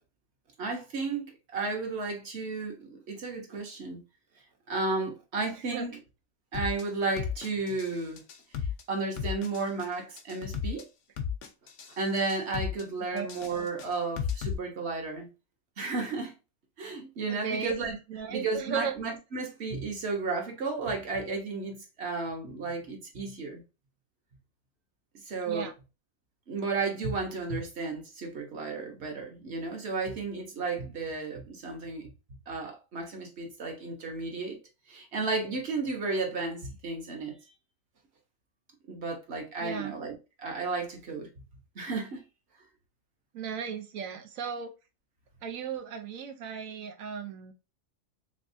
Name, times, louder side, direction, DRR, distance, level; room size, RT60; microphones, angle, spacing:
voice 1, 0.6-4.0 4.7-6.0 6.5-8.2 8.9-10.9 11.9-15.3 15.8-16.3 16.8-18.0 18.3-23.6 25.2-25.7 26.5-32.1 32.5-34.6 34.9-37.4 38.9-41.3 41.7-42.2, right 3 dB, 55° right, 1.3 m, -33 dB
voice 2, 5.7-6.0 13.1-13.3 17.3-17.7 18.1-18.9 25.5-25.7 39.6-39.9 43.3-44.7 45.4-47.5, right 6 dB, 85° right, 1.2 m, -36 dB
sound 1, 6.5-6.8 7.2-8.8 9.2-9.9 10.2-10.8 11.2-11.9 12.2-12.8 13.2-14.5, left 8 dB, 70° left, 1.0 m, -34 dB
3.4 x 3.3 x 2.6 m
omnidirectional pair, 1.4 m